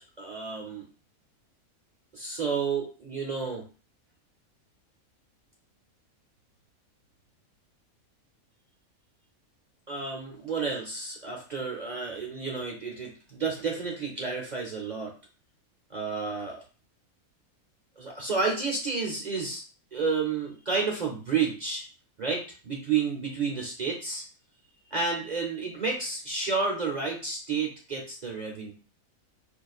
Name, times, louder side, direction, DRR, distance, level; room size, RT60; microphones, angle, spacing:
voice 1, 0.2-0.9 2.1-3.7 9.9-15.1 15.9-16.6 18.0-19.6 19.9-21.8 22.2-24.2 24.9-28.7, right 5 dB, 45° right, -1 dB, 0.6 m, -31 dB
4.5 x 2.4 x 2.4 m, 0.36 s
omnidirectional pair, 1.5 m